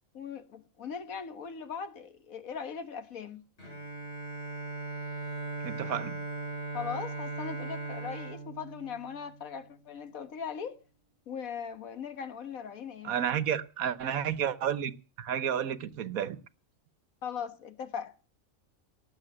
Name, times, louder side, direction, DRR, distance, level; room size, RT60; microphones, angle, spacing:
voice 1, 0.1-3.4 6.7-10.8 11.3-13.2 17.2-18.1, left 7 dB, 80° left, 1.8 m, -39 dB
Bowed string instrument, 3.6-9.6, right 3 dB, 50° left, 3.7 m, -39 dB
voice 2, 5.6-6.2 13.0-16.4, right 9 dB, 85° right, 1.4 m, -31 dB
19.0 x 7.4 x 8.7 m
omnidirectional pair, 1.4 m